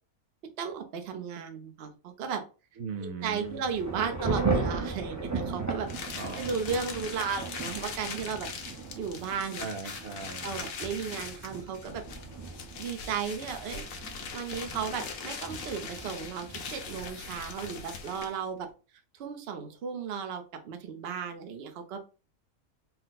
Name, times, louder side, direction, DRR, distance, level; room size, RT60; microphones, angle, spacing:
voice 1, 0.6-2.4 3.0-5.9 6.4-8.5 8.9-9.7 10.4-12.0 12.8-13.8 14.3-18.7 19.1-22.0, right 6 dB, 55° right, 6 dB, 0.8 m, -35 dB
voice 2, 2.8-3.6 6.1-6.5 9.6-10.6, right 4 dB, 75° right, 7 dB, 1.1 m, -38 dB
Thunder / Rain, 3.4-17.8, right 4 dB, 20° right, 0.5 m, -37 dB
sound 1, 5.9-18.5, left 5 dB, 70° left, 1.2 m, -41 dB
4.1 x 2.1 x 4.0 m, 0.33 s
omnidirectional pair, 1.5 m